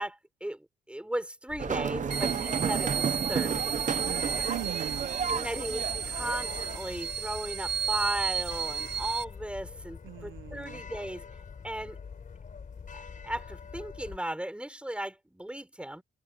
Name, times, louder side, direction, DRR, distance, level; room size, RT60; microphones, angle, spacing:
voice 1, 0.0-3.6 5.3-11.2 11.6-12.0 12.9-16.0, right 1 dB, 5° right, 5.6 m, -36 dB
sound 1, 1.5-14.2, left 6 dB, 40° left, 3.8 m, -44 dB
sound 2, 1.6-6.8, right 7 dB, 40° right, 0.8 m, -32 dB
sound 3, 2.1-9.2, right 7 dB, 60° right, 1.6 m, -33 dB
voice 2, 4.0-5.4 10.0-10.8, right 15 dB, 85° right, 1.0 m, -40 dB
cardioid pair, 90°, 20 cm